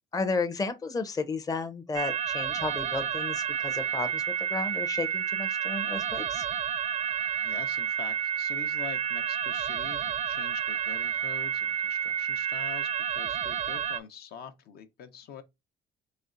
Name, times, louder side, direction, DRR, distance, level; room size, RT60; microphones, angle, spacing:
voice 1, 0.1-6.4, left 4 dB, 20° left, 0.6 m, -33 dB
sound 1, 1.9-14.0, right 8 dB, 45° right, 0.5 m, -30 dB
voice 2, 7.3-15.4, left 7 dB, 65° left, 0.9 m, -45 dB
4.2 x 3.2 x 2.5 m
cardioid pair, 110°, 17 cm